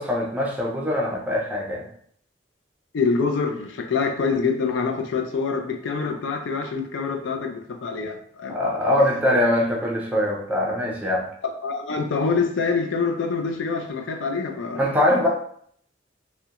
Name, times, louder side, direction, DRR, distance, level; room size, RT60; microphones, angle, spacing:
voice 1, 0.0-1.9 8.5-11.3 14.7-15.3, left 1 dB, 10° right, -3 dB, 0.4 m, -22 dB
voice 2, 2.9-8.6 11.4-14.9, left 4 dB, 80° left, 4 dB, 0.4 m, -25 dB
2.3 x 2.1 x 2.8 m, 0.63 s
head